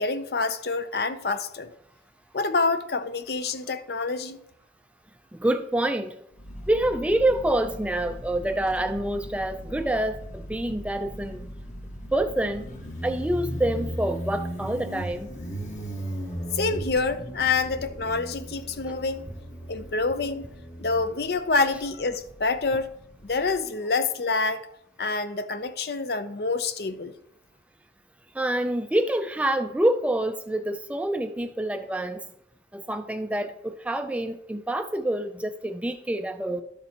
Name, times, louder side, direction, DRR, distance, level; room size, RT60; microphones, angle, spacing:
voice 1, 0.0-1.7 2.3-4.4 16.5-19.2 19.7-20.5 20.8-22.9 23.2-24.7 25.0-27.1, left 3 dB, 60° left, 0.6 m, -27 dB
voice 2, 5.3-6.2 6.7-11.5 12.1-12.7 13.0-15.3 18.9-19.0 28.3-32.2 32.7-36.6, right 1 dB, 5° right, 0.3 m, -27 dB
Motorcycle, 6.4-23.6, equal, 40° left, 1.5 m, -37 dB
12.5 x 6.8 x 2.9 m
head